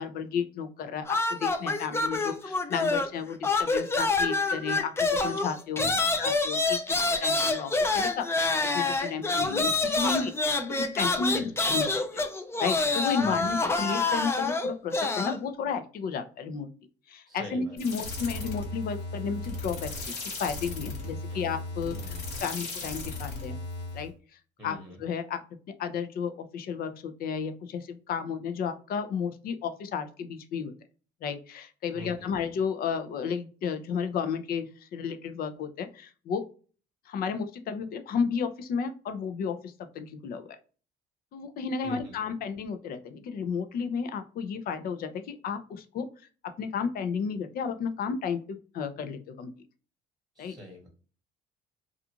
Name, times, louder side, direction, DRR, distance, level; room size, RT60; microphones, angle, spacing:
voice 1, 0.0-5.9 6.2-11.9 12.1-12.2 12.6-16.7 17.1-22.0 22.4-23.6 23.9-24.1 24.6-25.4 25.8-30.7 31.2-36.4 37.1-40.6 41.3-46.1 46.4-49.5 50.4-50.6, left 6 dB, 60° left, 9 dB, 0.5 m, -33 dB
sound 1, 1.1-3.2 3.4-15.4, left 3 dB, 15° left, 0.4 m, -27 dB
voice 2, 5.8-6.2 9.4-9.7 11.2-11.5 13.2-13.5 17.3-17.8 21.3-21.4 21.9-22.2 24.6-25.0 31.9-32.3 41.8-42.2 50.3-50.9, equal, ahead, 0 dB, 1.1 m, -44 dB
sound 2, 17.8-24.1, left 2 dB, 85° left, 1.3 m, -36 dB
2.4 x 2.4 x 2.8 m, 0.38 s
cardioid pair, 110°, 17 cm